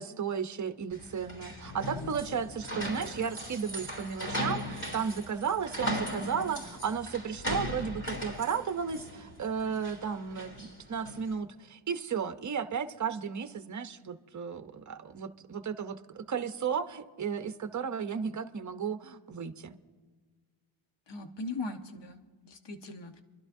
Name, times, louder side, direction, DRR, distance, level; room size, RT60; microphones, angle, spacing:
voice 1, 0.0-19.8, right 6 dB, 35° right, 10 dB, 0.7 m, -34 dB
sound 1, 0.9-11.3, equal, 35° left, 3.5 m, -38 dB
voice 2, 21.1-23.2, left 2 dB, 55° left, 6 dB, 1.2 m, -40 dB
27.5 x 12.0 x 2.7 m, 1.5 s
wide cardioid pair, 90°, 49 cm